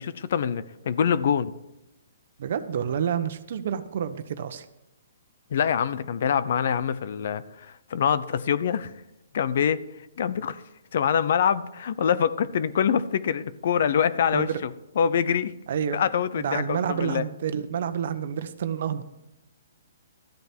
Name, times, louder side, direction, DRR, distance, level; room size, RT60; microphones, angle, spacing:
voice 1, 0.0-1.5 5.5-7.4 7.9-8.9 9.3-9.8 10.2-10.6 10.9-14.7 15.0-15.5 15.9-17.2, left 8 dB, 60° left, 16 dB, 0.7 m, -24 dB
voice 2, 2.4-4.6 14.3-14.6 15.7-16.0 16.3-19.0, right 8 dB, 55° right, 11 dB, 1.0 m, -29 dB
13.0 x 9.1 x 4.6 m, 0.90 s
hypercardioid pair, 155°, 0 cm